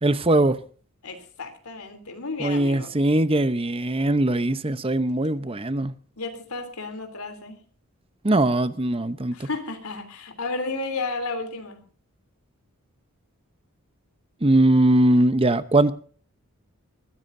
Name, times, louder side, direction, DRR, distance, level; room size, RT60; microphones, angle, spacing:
voice 1, 0.0-0.6 2.4-5.9 8.2-9.5 14.4-16.0, right 1 dB, 25° right, 0.8 m, -21 dB
voice 2, 1.0-2.9 6.2-7.6 9.3-11.8, left 3 dB, 75° left, 3.2 m, -32 dB
21.5 x 15.5 x 2.7 m
head